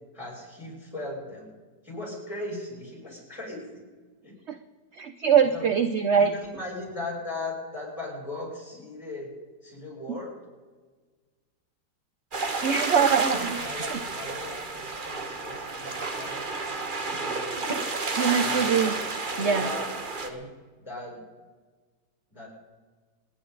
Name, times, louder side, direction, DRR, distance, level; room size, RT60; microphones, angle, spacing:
voice 1, 0.0-1.5 1.8-3.8 4.2-4.4 5.4-5.7 6.2-9.3 9.6-10.3 13.2-16.4 16.9-17.7 18.4-18.7 19.3-19.8 20.2-20.5 20.8-21.2 22.3-22.5, left 2 dB, 15° left, -3 dB, 6.6 m, -38 dB
voice 2, 4.9-6.3 12.6-14.0 18.1-19.0 19.4-19.7, right 7 dB, 55° right, 8 dB, 0.8 m, -23 dB
sound 1, 12.3-20.3, right 3 dB, 30° right, 1.3 m, -31 dB
27.5 x 10.0 x 4.1 m, 1.4 s
omnidirectional pair, 1.9 m